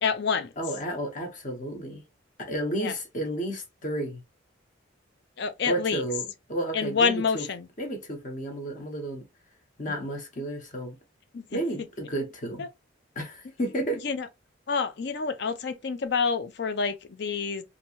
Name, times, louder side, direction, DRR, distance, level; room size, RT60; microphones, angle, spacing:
voice 1, 0.0-0.5 2.8-2.9 5.4-6.0 6.7-7.7 9.9-10.0 11.3-11.6 12.6-12.7 14.0-14.3 14.7-17.6, left 5 dB, 55° left, 0.5 m, -28 dB
voice 2, 0.6-2.0 2.4-4.2 5.7-6.2 6.5-7.4 7.8-9.2 9.8-10.9 11.5-12.7 13.2-14.0, right 1 dB, 40° left, 0.9 m, -32 dB
2.9 x 2.6 x 2.8 m
head